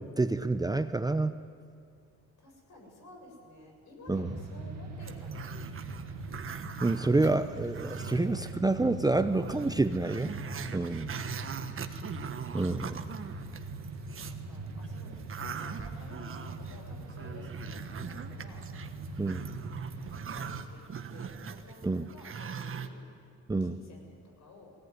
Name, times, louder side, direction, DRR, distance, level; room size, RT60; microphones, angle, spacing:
voice 1, 0.0-1.3 4.1-4.3 6.8-10.3 10.7-11.1 12.5-13.0 19.2-19.4 21.8-22.0 23.5-23.8, right 2 dB, 15° right, 10 dB, 0.8 m, -28 dB
voice 2, 2.4-6.1 7.9-8.4 10.8-12.2 13.9-18.6 20.0-20.8 21.1-23.0 23.6-24.7, left 2 dB, 65° left, 1 dB, 7.4 m, -53 dB
sound 1, 4.1-20.6, right 3 dB, 60° right, 2.2 m, -41 dB
Growling, 5.0-8.5 8.9-9.0 9.3-14.4 14.8-22.9, right 6 dB, 45° right, 1.4 m, -42 dB
20.5 x 17.5 x 9.6 m, 2.2 s
cardioid pair, 90°, 30 cm